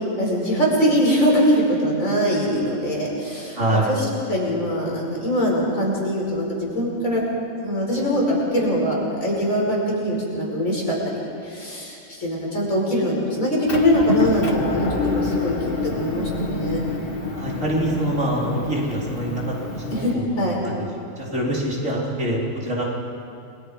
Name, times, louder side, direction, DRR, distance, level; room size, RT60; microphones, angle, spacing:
voice 1, 0.2-3.6 3.9-4.0 4.3-7.2 7.6-15.5 15.8-16.8 19.9-20.6, equal, 80° left, -3 dB, 5.9 m, -22 dB
voice 2, 3.5-4.0 17.3-20.9 21.2-22.8, right 1 dB, 70° right, -4 dB, 4.5 m, -25 dB
Motor vehicle (road) / Engine, 13.7-20.1, left 3 dB, 45° left, 1.9 m, -27 dB
29.5 x 22.5 x 5.2 m, 2.6 s
omnidirectional pair, 1.4 m